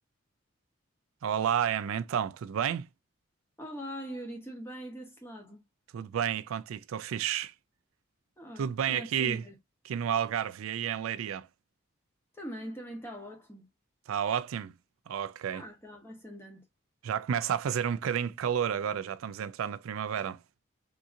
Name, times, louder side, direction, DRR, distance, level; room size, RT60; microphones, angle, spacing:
voice 1, 1.2-2.9 5.9-7.5 8.6-9.4 9.9-11.5 14.1-14.7 15.1-15.6 17.0-20.4, right 8 dB, 85° right, 0.3 m, -31 dB
voice 2, 3.6-5.7 8.4-9.5 12.3-13.7 15.5-16.6, equal, 10° left, 1.0 m, -42 dB
3.7 x 2.8 x 2.5 m
head